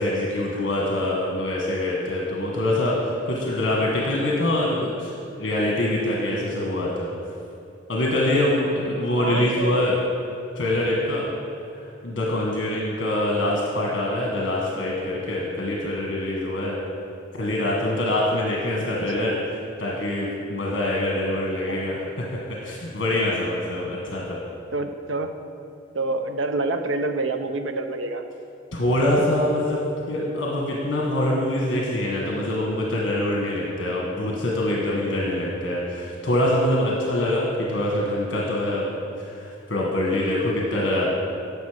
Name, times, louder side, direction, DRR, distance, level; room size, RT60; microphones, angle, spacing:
voice 1, 0.0-5.1 5.4-7.1 7.9-10.0 10.5-11.3 12.0-16.8 17.3-22.3 22.6-24.4 28.7-29.8 30.1-38.9 39.4-41.2, left 1 dB, 60° left, -3 dB, 1.4 m, -24 dB
voice 2, 9.2-9.9 17.8-18.0 18.9-19.4 21.7-22.0 24.7-25.3 25.9-28.2, right 2 dB, 85° right, 7 dB, 0.7 m, -28 dB
10.5 x 6.8 x 5.0 m, 2.6 s
head